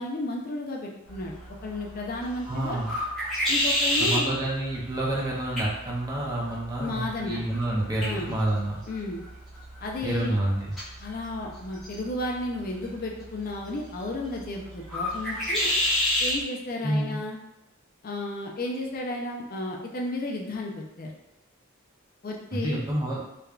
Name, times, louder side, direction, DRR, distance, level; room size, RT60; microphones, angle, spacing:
voice 1, 0.0-1.3 1.6-2.8 3.5-4.4 6.8-7.4 8.0-8.3 8.9-9.2 9.8-10.4 11.0-15.7 16.2-17.4 18.0-21.1 22.2-22.8, left 1 dB, 45° left, 0 dB, 0.4 m, -33 dB
sound 1, 1.1-16.4, left 1 dB, ahead, 0.9 m, -31 dB
voice 2, 2.5-2.9 4.0-8.8 10.0-10.7 16.8-17.2 22.5-23.2, right 1 dB, 20° right, -3 dB, 0.5 m, -28 dB
3.3 x 2.2 x 2.3 m, 0.92 s
head